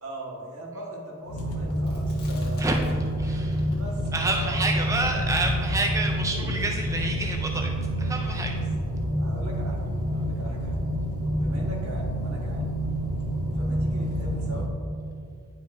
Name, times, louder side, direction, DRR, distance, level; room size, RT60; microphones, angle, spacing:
voice 1, 0.0-2.7 3.7-5.3 8.5-8.6 9.1-10.9 11.4-12.7 13.5-14.7, right 1 dB, 70° right, -3 dB, 1.5 m, -40 dB
sound 1, 1.3-14.7, equal, 85° left, 0.9 m, -28 dB
Chewing mastication, 1.8-3.2 3.5-6.9, equal, 50° left, 1.4 m, -46 dB
voice 2, 3.2-3.6 4.1-7.7 8.0-8.5, right 2 dB, 15° right, 2 dB, 0.3 m, -28 dB
9.6 x 5.2 x 2.6 m, 2.3 s
head